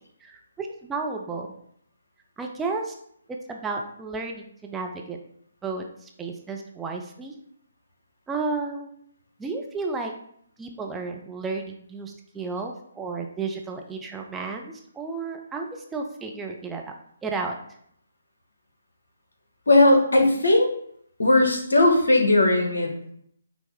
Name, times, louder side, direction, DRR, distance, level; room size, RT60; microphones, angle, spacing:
voice 1, 0.2-1.5 2.4-2.9 3.3-5.2 5.6-7.3 8.3-8.9 9.4-10.1 10.6-16.8 17.2-17.5, right 4 dB, 10° right, 2 dB, 0.4 m, -32 dB
voice 2, 19.7-20.7 21.2-23.1, left 2 dB, 70° left, 3 dB, 0.9 m, -18 dB
5.5 x 2.0 x 3.5 m, 0.67 s
figure-of-eight pair, 140°, 0 cm